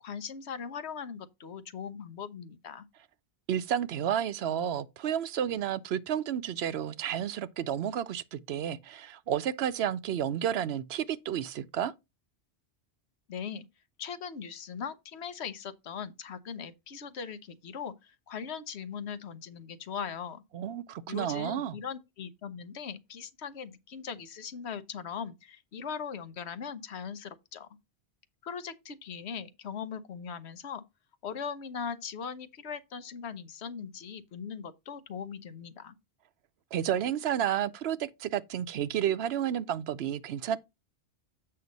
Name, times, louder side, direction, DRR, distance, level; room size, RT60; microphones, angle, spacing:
voice 1, 0.0-2.9 13.3-13.7 14.0-20.4 21.1-27.7 28.4-30.8 31.2-36.0, left 7 dB, 85° left, 1.1 m, -40 dB
voice 2, 3.5-11.9 20.5-21.8 36.7-40.6, right 10 dB, 80° right, 0.9 m, -31 dB
7.7 x 5.7 x 4.0 m
omnidirectional pair, 1.1 m